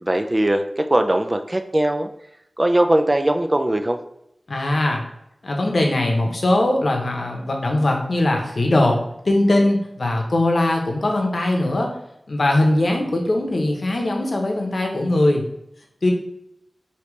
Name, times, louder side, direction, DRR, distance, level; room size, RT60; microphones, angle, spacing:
voice 1, 0.0-2.1 2.6-4.0, right 1 dB, 30° right, 6 dB, 0.4 m, -20 dB
voice 2, 4.5-5.0 5.4-9.0 9.2-11.9 12.3-15.4 16.0-16.1, left 1 dB, 70° left, 2 dB, 0.8 m, -20 dB
4.9 x 2.8 x 3.1 m, 0.79 s
wide cardioid pair, 55°, 0 cm